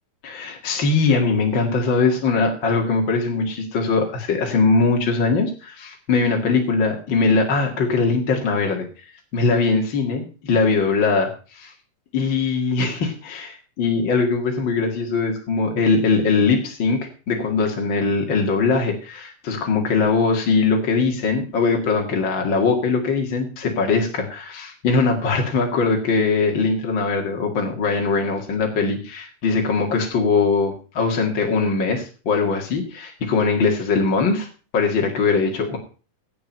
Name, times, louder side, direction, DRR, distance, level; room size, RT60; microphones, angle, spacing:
voice 1, 0.2-8.9 9.3-11.7 12.1-34.5 34.7-35.8, left 4 dB, 40° left, 1 dB, 2.3 m, -21 dB
17.0 x 6.2 x 5.3 m, 0.36 s
omnidirectional pair, 3.8 m